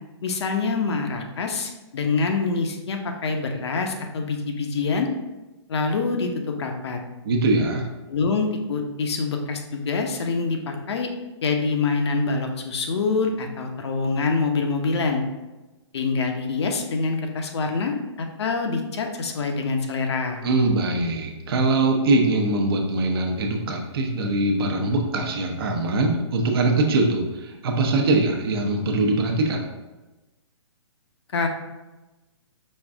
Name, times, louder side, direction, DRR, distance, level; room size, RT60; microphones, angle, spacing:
voice 1, 0.2-5.1 5.7-7.0 8.1-11.1 11.4-15.2 15.9-20.4 31.3-31.5, left 4 dB, 60° left, 4 dB, 0.8 m, -25 dB
voice 2, 7.2-7.9 20.4-29.6, right 2 dB, 50° right, 2 dB, 0.9 m, -22 dB
5.3 x 2.5 x 3.6 m, 1.1 s
hypercardioid pair, 155°, 15 cm